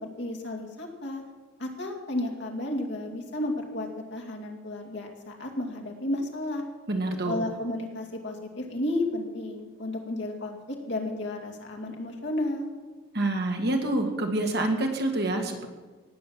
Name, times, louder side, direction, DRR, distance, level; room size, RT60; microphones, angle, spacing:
voice 1, 0.2-1.2 1.6-6.6 7.3-12.7, left 1 dB, 55° left, 1 dB, 2.4 m, -32 dB
voice 2, 6.9-7.4 13.1-15.7, right 1 dB, 50° right, 3 dB, 1.9 m, -27 dB
18.5 x 7.9 x 7.4 m, 1.3 s
head